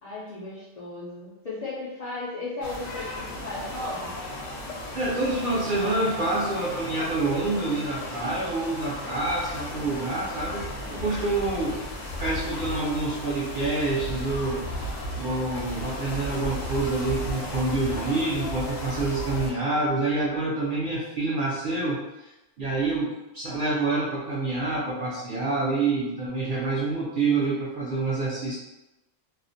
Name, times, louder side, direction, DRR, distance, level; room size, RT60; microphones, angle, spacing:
voice 1, 0.0-4.1, left 2 dB, 60° left, -8 dB, 0.4 m, -35 dB
sound 1, 2.6-19.5, left 1 dB, 85° left, 1.0 m, -35 dB
voice 2, 4.9-11.8 12.2-22.3 22.6-28.6, right 2 dB, 60° right, -6 dB, 0.5 m, -27 dB
2.4 x 2.0 x 2.6 m, 0.95 s
omnidirectional pair, 1.3 m